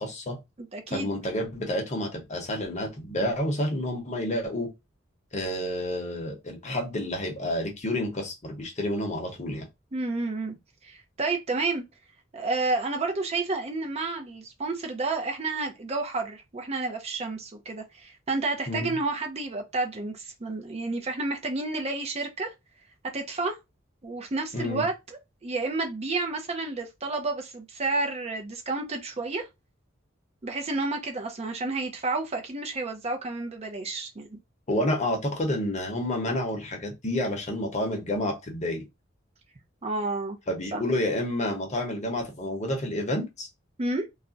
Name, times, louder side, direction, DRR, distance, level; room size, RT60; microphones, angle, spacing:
voice 1, 0.0-0.4 0.9-4.7 5.3-9.7 18.7-19.0 24.5-24.9 34.7-38.8 40.5-43.5, left 1 dB, 35° left, 0.8 m, -29 dB
voice 2, 0.6-1.2 9.9-10.5 10.8-11.8 12.3-22.5 23.1-23.5 24.0-24.9 25.4-29.5 30.4-34.4 39.8-40.4 40.7-40.8 43.8-44.1, right 3 dB, 35° right, 0.5 m, -30 dB
2.4 x 2.1 x 3.8 m
head